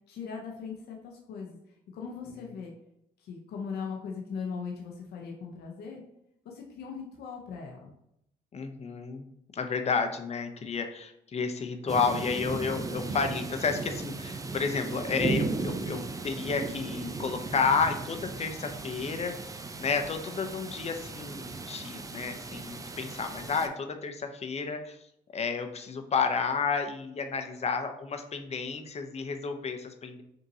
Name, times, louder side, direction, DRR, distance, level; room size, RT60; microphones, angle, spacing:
voice 1, 0.1-1.6 1.9-2.7 3.2-6.0 6.4-7.9, left 5 dB, 75° left, 0 dB, 0.8 m, -39 dB
voice 2, 8.5-9.3 9.5-19.3 19.8-25.0 25.3-30.2, left 5 dB, 40° left, 6 dB, 0.7 m, -31 dB
sound 1, 11.9-23.7, right 3 dB, 20° right, 0.5 m, -36 dB
5.4 x 2.8 x 2.7 m, 0.78 s
supercardioid pair, 65°, 17 cm